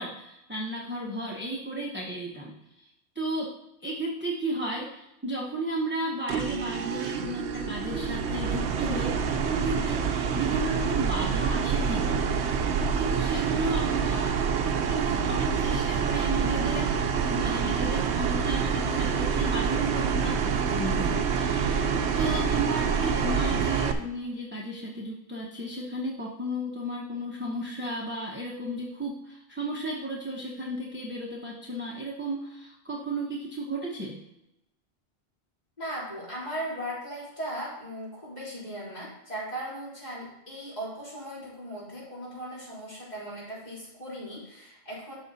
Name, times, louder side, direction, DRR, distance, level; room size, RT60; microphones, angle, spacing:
voice 1, 0.0-2.9 3.1-3.5 3.8-12.7 13.0-14.3 14.9-16.9 17.3-21.9 22.2-34.2, right 1 dB, 10° right, -3 dB, 0.9 m, -34 dB
sound 1, 6.3-23.9, right 6 dB, 75° right, 0.9 m, -27 dB
voice 2, 35.8-45.2, right 1 dB, 40° left, -7 dB, 3.7 m, -38 dB
12.5 x 4.2 x 4.1 m, 0.87 s
omnidirectional pair, 1.2 m